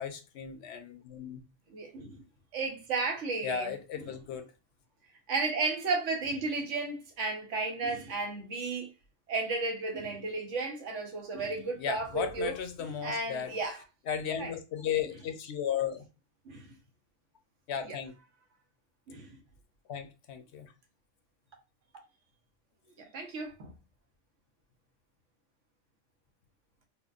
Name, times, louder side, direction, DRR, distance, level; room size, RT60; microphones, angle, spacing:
voice 1, 0.0-1.4 3.4-4.5 11.8-13.6 14.1-16.0 17.7-18.1 19.9-20.7, left 8 dB, 70° left, 0.8 m, -35 dB
voice 2, 1.7-2.2 2.5-3.7 5.3-8.9 9.3-12.6 13.0-13.8 14.4-14.5 16.4-16.7 17.9-18.0 19.1-19.4 23.0-23.7, right 3 dB, 80° right, 1.2 m, -33 dB
4.3 x 2.2 x 2.4 m
omnidirectional pair, 1.2 m